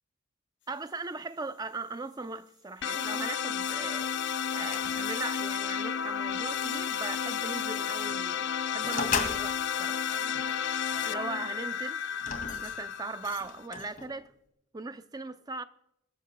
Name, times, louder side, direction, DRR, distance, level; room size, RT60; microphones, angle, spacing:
voice 1, 0.7-4.1 4.5-10.4 11.0-12.0 12.6-14.3 14.7-15.6, right 3 dB, 20° right, 0.5 m, -39 dB
sound 1, 2.8-13.7, left 8 dB, 55° left, 0.5 m, -32 dB
sound 2, 3.6-4.1 4.7-5.3 5.6-5.8 6.3-7.4 8.0-8.2 8.8-9.7 10.3-11.5 12.1-14.2, left 5 dB, 40° left, 2.3 m, -38 dB
25.0 x 14.0 x 2.2 m
head